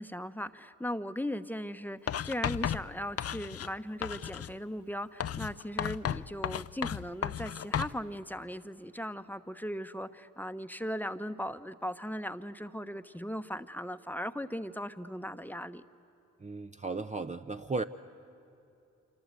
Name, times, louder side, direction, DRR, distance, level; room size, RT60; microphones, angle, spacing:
voice 1, 0.0-15.8, equal, 5° left, 10 dB, 1.0 m, -38 dB
Writing, 2.1-3.7 4.0-4.6 5.2-8.0, left 9 dB, 50° left, 0.6 m, -34 dB
voice 2, 16.4-17.8, right 3 dB, 20° right, 7 dB, 0.7 m, -35 dB
27.5 x 26.0 x 8.3 m, 2.8 s
supercardioid pair, 45°, 32 cm